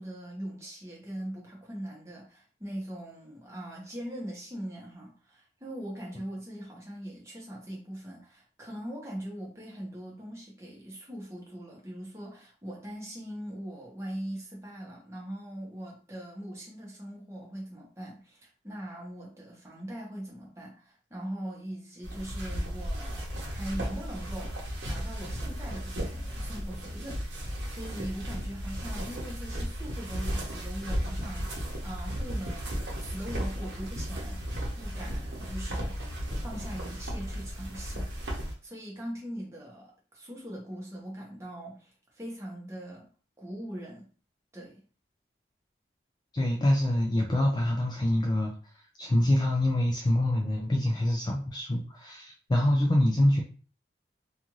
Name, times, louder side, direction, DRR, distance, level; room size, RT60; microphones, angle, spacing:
voice 1, 0.0-24.5 24.9-34.4 34.7-36.1 36.4-38.1 38.6-43.1 43.4-44.1 44.5-44.8, right 1 dB, 15° right, -3 dB, 0.9 m, -41 dB
sound 1, 22.0-38.5, equal, 75° right, 0.9 m, -35 dB
voice 2, 46.3-48.5 49.0-53.4, left 1 dB, 25° left, 0 dB, 0.3 m, -25 dB
2.5 x 2.3 x 3.0 m, 0.39 s
head